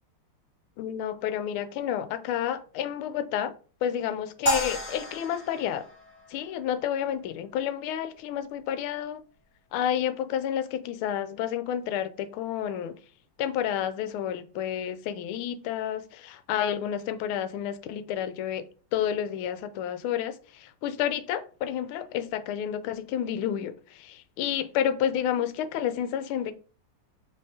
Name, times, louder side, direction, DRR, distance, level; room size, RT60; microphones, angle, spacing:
voice 1, 0.8-3.5 3.8-5.8 6.3-9.2 9.7-12.9 13.4-18.7 18.9-26.5, left 10 dB, 80° left, 1.4 m, -30 dB
sound 1, 4.5-6.8, equal, 5° left, 1.9 m, -31 dB
5.4 x 3.5 x 2.7 m
omnidirectional pair, 2.4 m